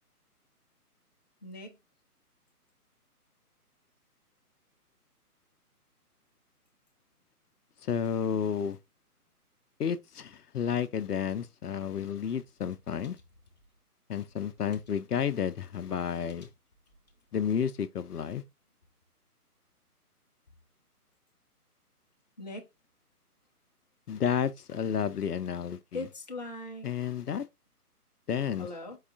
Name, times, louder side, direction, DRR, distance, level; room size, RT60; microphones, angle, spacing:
voice 1, 1.4-1.8 22.4-22.7 25.9-26.9 28.6-29.0, left 2 dB, 30° left, 0.5 m, -39 dB
voice 2, 7.8-8.8 9.8-13.2 14.1-16.5 17.3-18.4 24.1-26.0 26.8-27.4 28.3-28.7, left 8 dB, 80° left, 0.6 m, -31 dB
4.7 x 2.3 x 3.5 m
figure-of-eight pair, 140°, 46 cm